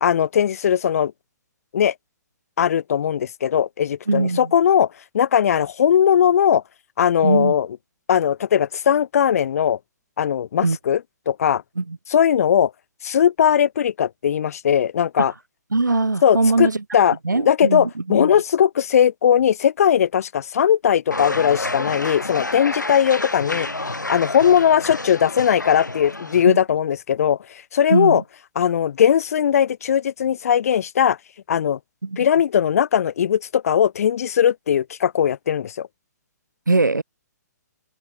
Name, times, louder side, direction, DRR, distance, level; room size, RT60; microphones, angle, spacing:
voice 1, 0.0-1.1 1.7-1.9 2.6-4.9 5.1-6.6 7.0-7.7 8.1-9.8 10.2-11.0 11.3-11.6 12.1-12.7 13.0-15.3 16.2-23.7 24.1-27.4 27.7-28.2 28.6-31.2 31.5-31.8 32.2-35.9, left 9 dB, 55° left, 0.6 m, -19 dB
voice 2, 4.1-4.5 7.2-7.5 10.6-10.8 11.8-12.0 15.7-16.8 17.2-18.3 26.4-26.6 27.9-28.2 32.0-32.2 36.7-37.0, right 3 dB, 85° right, 1.1 m, -21 dB
sound 1, 21.1-26.4, left 2 dB, 90° left, 1.4 m, -29 dB
figure-of-eight pair, 125°, 10 cm